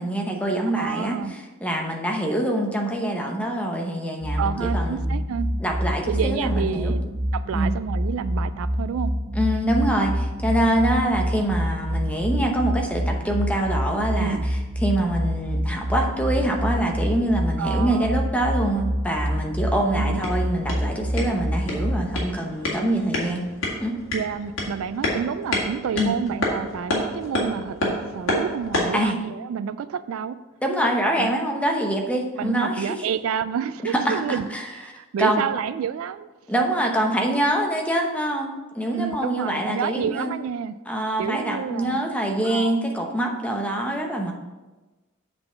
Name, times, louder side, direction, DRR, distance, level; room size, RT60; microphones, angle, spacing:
voice 1, 0.0-1.2 1.6-5.2 5.6-6.9 7.5-7.7 9.3-14.4 14.8-23.4 23.8-23.9 26.0-26.1 28.9-29.2 30.6-33.0 33.8-34.7 35.2-35.4 36.5-40.3 40.9-44.3, right 1 dB, 5° left, 1 dB, 0.8 m, -25 dB
voice 2, 0.7-1.4 4.4-5.5 6.1-9.1 14.2-14.5 17.6-18.2 19.9-20.3 24.1-30.4 31.2-31.3 32.4-36.3 38.9-40.8 41.2-42.0 42.4-42.8, right 7 dB, 75° right, 13 dB, 0.3 m, -29 dB
sound 1, 4.2-22.2, equal, 60° right, 0.9 m, -26 dB
sound 2, 20.0-29.0, left 1 dB, 65° left, 1.9 m, -29 dB
7.7 x 4.0 x 5.7 m, 1.2 s
head